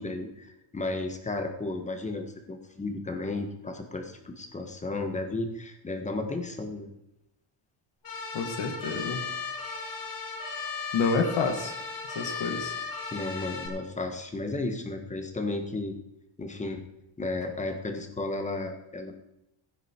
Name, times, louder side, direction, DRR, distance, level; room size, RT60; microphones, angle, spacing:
voice 1, 0.0-6.9 13.1-16.0 16.4-16.8 17.2-19.1, left 2 dB, 15° left, 5 dB, 1.5 m, -33 dB
sound 1, 8.0-13.7, left 5 dB, 45° left, 4.0 m, -36 dB
voice 2, 8.3-9.2 10.9-11.8 12.2-12.7, left 4 dB, 60° left, 3 dB, 2.1 m, -28 dB
15.5 x 10.0 x 4.7 m, 0.88 s
cardioid pair, 155°, 48 cm